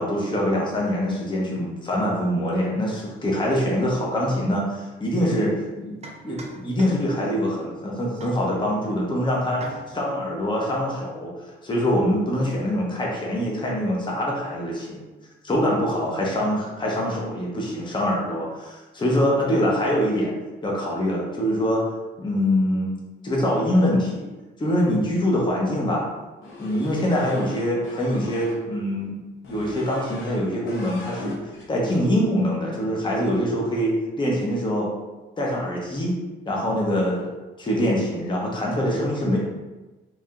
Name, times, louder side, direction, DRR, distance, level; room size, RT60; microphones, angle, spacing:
voice 1, 0.0-6.0 6.2-15.1 15.4-20.3 20.6-21.8 22.2-22.9 23.2-24.3 24.6-26.1 26.6-29.2 29.5-34.9 35.4-36.2 36.5-37.3 37.6-39.4, equal, 25° left, -3 dB, 0.7 m, -24 dB
sound 1, 5.3-5.4 6.0-7.3 8.2-9.1 9.5-10.1, right 3 dB, 35° right, 0.5 m, -42 dB
sound 2, 26.4-28.6 29.4-30.4 30.7-31.7, left 2 dB, 80° left, 0.8 m, -39 dB
3.2 x 2.7 x 2.3 m, 1.1 s
cardioid pair, 90°, 20 cm